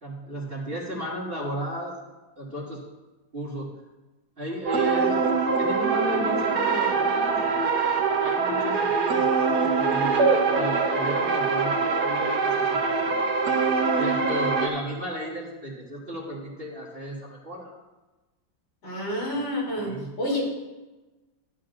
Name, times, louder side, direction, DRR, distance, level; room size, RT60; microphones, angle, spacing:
voice 1, 0.0-1.9 2.4-2.8 3.3-3.7 4.4-7.4 8.2-12.6 13.0-13.2 14.0-17.8 19.8-20.1, equal, 30° right, -5 dB, 2.1 m, -34 dB
sound 1, 4.7-14.7, right 4 dB, 60° right, 1.5 m, -23 dB
voice 2, 18.8-19.9 20.2-20.5, left 1 dB, 75° left, -5 dB, 4.1 m, -28 dB
12.5 x 10.5 x 2.6 m, 1.1 s
omnidirectional pair, 2.0 m